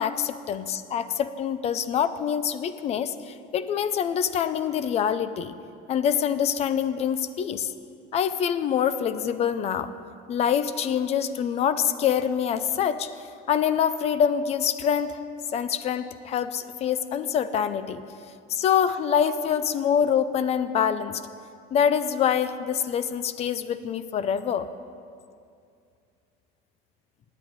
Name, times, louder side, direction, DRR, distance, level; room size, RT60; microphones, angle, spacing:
voice 1, 0.0-5.5 5.9-7.7 8.1-9.9 10.3-13.1 13.5-15.2 15.5-18.0 18.5-21.2 21.7-24.7, left 8 dB, 35° left, 13 dB, 0.5 m, -25 dB
9.8 x 8.9 x 9.4 m, 2.4 s
cardioid pair, 165°, 19 cm